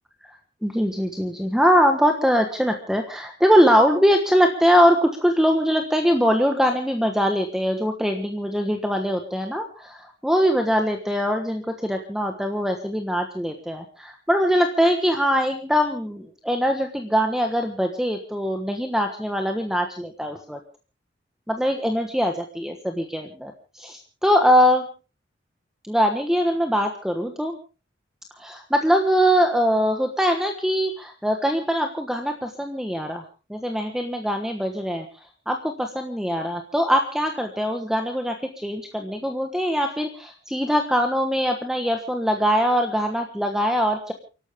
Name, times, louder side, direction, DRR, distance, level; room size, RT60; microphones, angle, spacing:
voice 1, 0.6-20.6 21.5-24.8 25.9-27.5 28.4-33.2 33.5-35.0 35.5-44.1, equal, 5° right, 4 dB, 1.3 m, -22 dB
29.5 x 12.0 x 3.6 m, 0.35 s
head